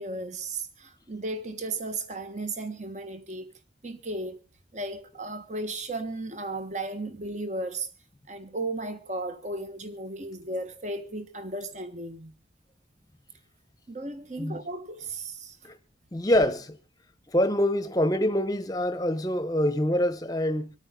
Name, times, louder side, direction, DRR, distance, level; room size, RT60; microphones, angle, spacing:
voice 1, 0.0-3.5 3.8-4.4 4.7-7.9 8.3-12.3 13.9-15.6, right 2 dB, 40° right, 1.4 m, -35 dB
voice 2, 16.1-16.8 17.3-20.7, left 1 dB, 20° left, 0.9 m, -25 dB
25.5 x 9.0 x 3.8 m
head